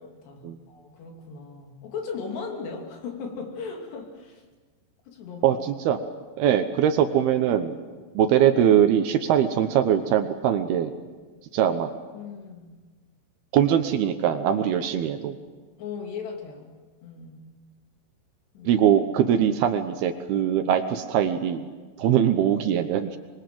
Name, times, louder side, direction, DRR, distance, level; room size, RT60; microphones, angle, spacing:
voice 1, 0.0-4.4 5.1-5.6 12.1-12.9 15.8-16.7 17.0-17.6 18.5-18.8, left 5 dB, 70° left, 2 dB, 5.0 m, -37 dB
voice 2, 5.4-6.0 6.4-7.8 8.2-10.9 11.5-11.9 13.5-15.4 18.7-21.7 22.0-23.2, right 9 dB, 70° right, 8 dB, 2.7 m, -22 dB
26.0 x 22.5 x 7.7 m, 1.4 s
omnidirectional pair, 5.1 m